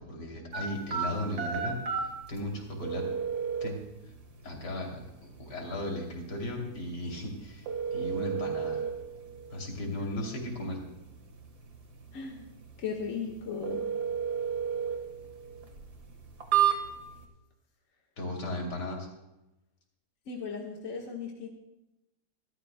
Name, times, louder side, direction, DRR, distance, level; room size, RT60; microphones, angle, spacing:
voice 1, 0.1-3.1 3.6-3.8 4.4-5.0 5.4-8.8 9.5-10.8 18.2-19.1, left 1 dB, 75° left, 0 dB, 3.5 m, -36 dB
sound 1, 0.5-17.2, right 7 dB, 70° right, 2.1 m, -34 dB
voice 2, 12.1-12.5 12.8-13.8 20.3-21.5, left 5 dB, 50° left, -1 dB, 1.8 m, -37 dB
26.5 x 13.0 x 2.2 m, 0.96 s
omnidirectional pair, 1.8 m